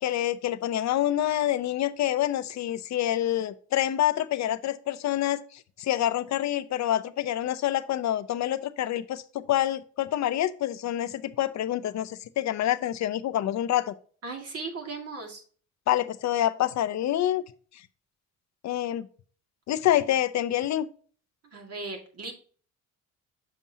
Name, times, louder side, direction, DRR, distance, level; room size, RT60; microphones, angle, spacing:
voice 1, 0.0-5.4 5.8-13.9 15.9-17.4 18.6-19.1 19.7-20.9, left 12 dB, 65° left, 14 dB, 0.6 m, -27 dB
voice 2, 14.2-15.4 21.5-22.3, right 3 dB, 50° right, 2 dB, 2.0 m, -37 dB
7.0 x 6.0 x 2.7 m, 0.42 s
cardioid pair, 90°, 30 cm